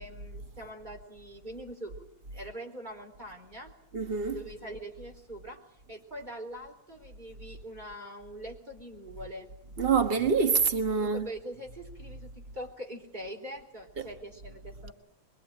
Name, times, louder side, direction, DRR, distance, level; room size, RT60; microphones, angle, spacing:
voice 1, 0.0-2.1 2.3-3.7 4.3-5.6 5.9-9.5 10.9-14.9, right 1 dB, 15° right, 4.1 m, -43 dB
voice 2, 3.9-4.4 9.8-11.3, right 5 dB, 75° right, 0.5 m, -26 dB
24.0 x 23.0 x 9.0 m
omnidirectional pair, 3.3 m